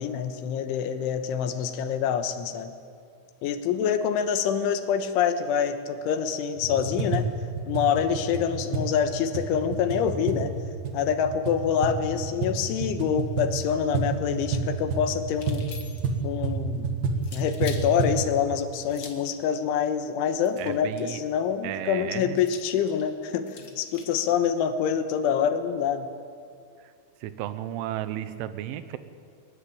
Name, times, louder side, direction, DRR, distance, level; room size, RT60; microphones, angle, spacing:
voice 1, 0.0-2.7 3.4-7.3 7.7-10.5 10.9-15.6 16.2-16.9 17.3-26.1, left 8 dB, 80° left, 9 dB, 3.6 m, -26 dB
sound 1, 6.6-18.2, right 4 dB, 55° right, 3.3 m, -30 dB
sound 2, 15.4-16.2 17.2-17.9 18.8-19.3 20.4-21.2 22.4-24.2, left 5 dB, 50° left, 1.5 m, -45 dB
voice 2, 20.6-21.2 21.6-22.4 27.2-29.0, right 12 dB, 85° right, 12 dB, 3.5 m, -33 dB
22.0 x 20.0 x 8.7 m, 2.2 s
omnidirectional pair, 5.6 m